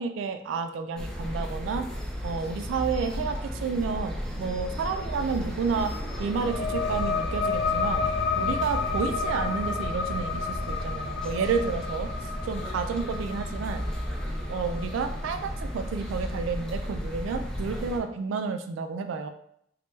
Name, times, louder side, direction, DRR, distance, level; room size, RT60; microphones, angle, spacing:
voice 1, 0.0-1.9 2.2-5.9 6.2-8.1 8.4-13.8 14.5-19.3, right 5 dB, 80° right, 7 dB, 0.3 m, -30 dB
sound 1, 1.0-18.0, equal, 5° left, 0.4 m, -34 dB
sound 2, 5.7-16.9, left 5 dB, 60° left, 0.4 m, -32 dB
3.2 x 2.1 x 3.1 m, 0.70 s
head